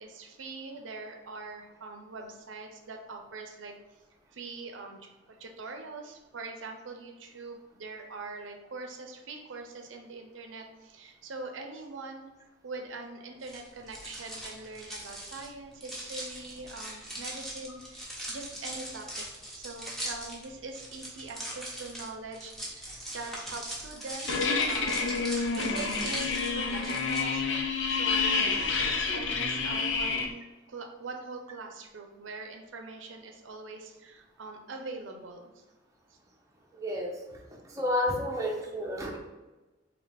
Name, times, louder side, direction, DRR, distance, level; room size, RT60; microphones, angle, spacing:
voice 1, 0.0-3.7 4.3-12.3 12.6-19.3 19.5-25.1 25.5-35.6 36.1-36.2, right 3 dB, 85° right, 3 dB, 0.6 m, -43 dB
sound 1, 13.4-27.2, right 1 dB, ahead, 1.0 m, -40 dB
sound 2, 24.3-30.3, left 4 dB, 75° left, 0.6 m, -28 dB
voice 2, 36.7-37.2 37.6-39.2, left 1 dB, 15° right, -1 dB, 0.7 m, -30 dB
4.0 x 2.9 x 3.4 m, 1.1 s
head